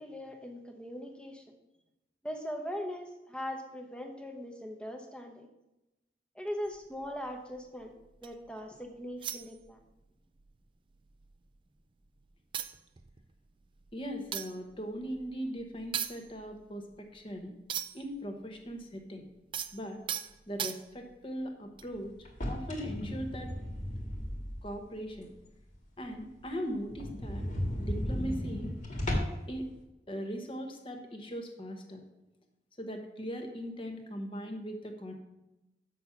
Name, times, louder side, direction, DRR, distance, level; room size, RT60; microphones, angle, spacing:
voice 1, 0.0-1.6 2.2-5.5 6.3-9.8, equal, 5° left, 3 dB, 0.9 m, -40 dB
sound 1, 6.7-8.5 9.2-10.1 10.4-10.6 10.9-11.8 12.2-12.3 12.5-18.2 18.4-21.2 21.8-22.0, right 9 dB, 30° right, 0.4 m, -40 dB
voice 2, 13.9-17.5 17.9-19.3 19.7-20.0 20.5-22.1 22.5-23.5 24.6-25.3 26.0-27.5 27.8-28.8 29.5-29.7 30.1-32.0 32.8-35.1, equal, 30° left, 3 dB, 1.1 m, -39 dB
sound 2, 22.2-24.8 25.2-25.3 25.7-25.8 26.1-26.2 26.5-26.6 26.9-29.5, left 1 dB, 45° left, 1.8 m, -35 dB
7.2 x 6.2 x 5.8 m, 0.95 s
head